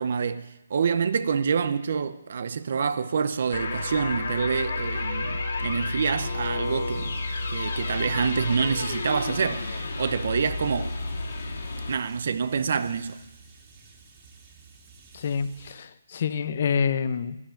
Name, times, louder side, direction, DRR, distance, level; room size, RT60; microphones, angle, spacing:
voice 1, 0.0-7.2 7.5-11.0 11.9-13.2, right 6 dB, 50° right, 0.7 m, -27 dB
sound 1, 3.5-11.9, left 3 dB, 60° left, 2.7 m, -31 dB
sound 2, 6.6-15.8, right 3 dB, 25° right, 2.7 m, -52 dB
voice 2, 15.1-17.4, left 6 dB, 45° left, 0.8 m, -27 dB
12.5 x 10.0 x 8.9 m
hypercardioid pair, 165°, 0 cm